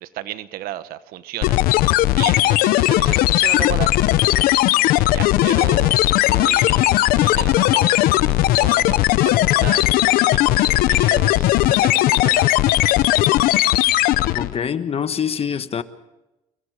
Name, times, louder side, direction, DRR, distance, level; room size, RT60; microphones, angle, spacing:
voice 1, 0.0-1.6 2.1-3.9 4.2-4.6 4.9-6.9 7.1-8.0 8.3-9.9 10.2-12.5, right 13 dB, 75° right, 1.2 m, -34 dB
sound 1, 1.4-14.6, left 16 dB, 75° left, 0.8 m, -17 dB
voice 2, 14.3-15.8, left 7 dB, 40° left, 1.4 m, -25 dB
28.5 x 23.0 x 4.9 m
supercardioid pair, 85°, 15 cm